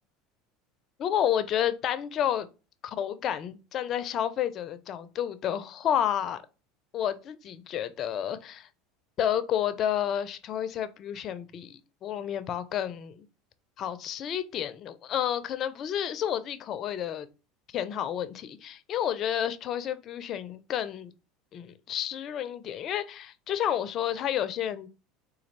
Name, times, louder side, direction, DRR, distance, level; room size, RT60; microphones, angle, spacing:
voice 1, 1.0-2.5 2.8-6.4 6.9-8.7 9.2-13.3 13.8-17.3 17.7-21.1 21.5-24.9, left 10 dB, 45° left, 0.5 m, -30 dB
4.0 x 2.3 x 3.2 m
hypercardioid pair, 85°, 0 cm